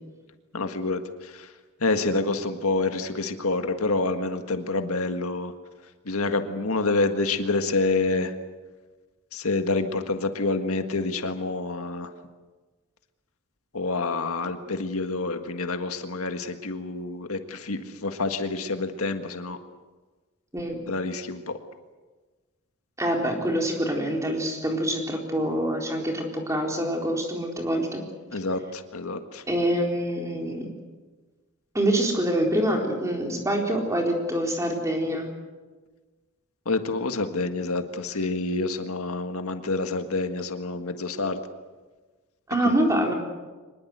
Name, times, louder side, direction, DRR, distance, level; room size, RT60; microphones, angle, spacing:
voice 1, 0.5-1.5 1.8-5.5 6.1-8.3 9.3-12.1 13.7-19.6 20.9-21.5 28.3-29.4 36.7-41.4 42.6-42.7, left 3 dB, 80° left, 7 dB, 1.7 m, -27 dB
voice 2, 23.0-28.0 29.5-30.7 31.7-35.3 42.5-43.1, right 1 dB, 15° right, 1 dB, 4.0 m, -25 dB
24.5 x 21.0 x 8.1 m, 1.3 s
head